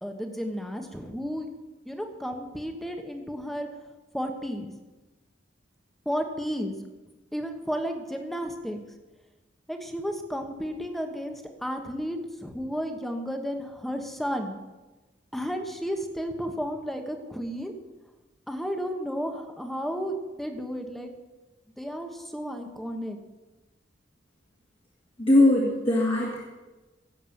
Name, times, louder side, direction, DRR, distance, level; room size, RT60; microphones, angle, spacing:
voice 1, 0.0-1.5 1.8-3.7 4.1-4.7 6.0-6.8 7.3-8.8 9.7-14.6 15.3-17.7 18.5-21.1 21.8-23.2, equal, ahead, 5 dB, 1.3 m, -33 dB
voice 2, 25.2-26.5, left 1 dB, 30° left, -4 dB, 2.1 m, -21 dB
16.5 x 7.2 x 7.2 m, 1.2 s
head